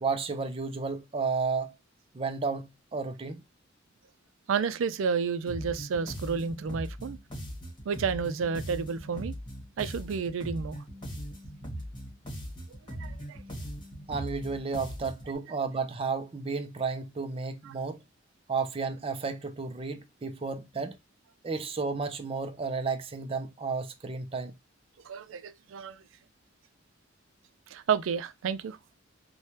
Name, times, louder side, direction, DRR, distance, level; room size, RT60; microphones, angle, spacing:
voice 1, 0.0-1.7 2.1-3.4 14.1-18.0 18.5-21.0 21.4-24.5, right 4 dB, 30° right, 0.4 m, -32 dB
voice 2, 4.5-7.2 7.9-9.3 9.8-10.8 13.0-13.4 17.6-17.7 25.1-26.0 27.7-28.8, right 6 dB, 90° right, 0.4 m, -31 dB
sound 1, 5.5-15.3, equal, 25° left, 1.2 m, -40 dB
3.2 x 2.2 x 2.8 m
head